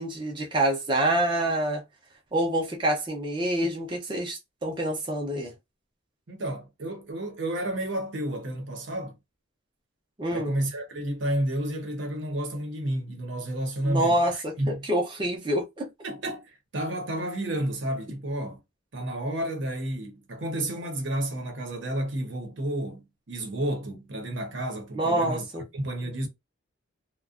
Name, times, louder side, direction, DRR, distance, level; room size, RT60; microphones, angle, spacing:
voice 1, 0.0-1.8 2.3-5.5 10.2-10.6 13.8-15.9 25.0-25.6, right 1 dB, 25° right, 0.6 m, -26 dB
voice 2, 6.3-9.2 10.3-14.8 16.0-18.6 18.9-25.4 25.7-26.3, right 1 dB, 60° right, 0.8 m, -31 dB
2.4 x 2.2 x 2.4 m
head